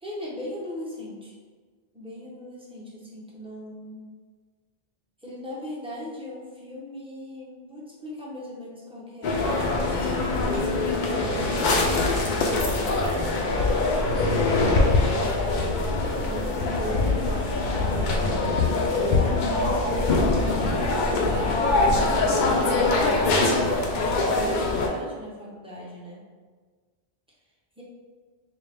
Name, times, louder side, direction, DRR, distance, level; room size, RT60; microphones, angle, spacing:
voice 1, 0.0-1.3 1.9-4.1 5.2-10.3 10.7-13.2 14.4-17.6 17.9-21.8 22.3-26.2 27.8-27.9, left 1 dB, 5° right, -6 dB, 0.6 m, -39 dB
sound 1, 9.2-24.9, left 2 dB, 55° left, 0.6 m, -23 dB
4.2 x 2.2 x 3.3 m, 1.5 s
omnidirectional pair, 1.1 m